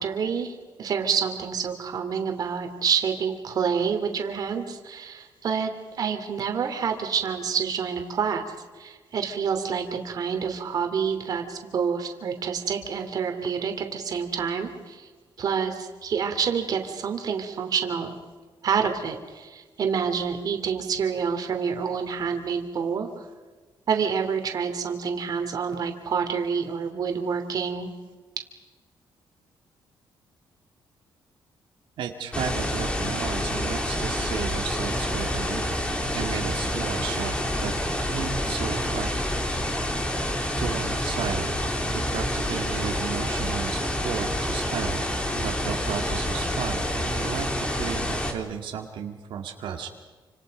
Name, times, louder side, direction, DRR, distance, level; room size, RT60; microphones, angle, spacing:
voice 1, 0.0-5.7 6.0-8.4 8.8-15.1 15.4-18.1 18.6-23.1 23.9-27.9, right 6 dB, 50° right, 5 dB, 2.9 m, -28 dB
voice 2, 32.0-35.8 36.1-37.7 38.0-39.1 40.6-41.6 42.1-45.0 45.3-50.0, right 8 dB, 90° right, 2 dB, 2.2 m, -34 dB
sound 1, 32.3-48.3, left 1 dB, 15° left, 2.7 m, -28 dB
29.0 x 26.5 x 5.3 m, 1.3 s
cardioid pair, 155°, 8 cm